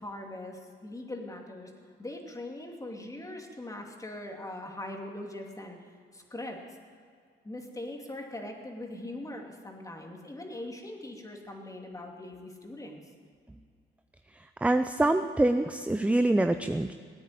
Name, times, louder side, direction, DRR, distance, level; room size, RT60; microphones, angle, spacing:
voice 1, 0.0-6.6 7.4-13.1, left 1 dB, 15° left, 2 dB, 2.6 m, -41 dB
voice 2, 14.6-16.9, right 2 dB, 5° right, 9 dB, 0.5 m, -25 dB
18.0 x 9.3 x 8.7 m, 2.1 s
cardioid pair, 90°, 20 cm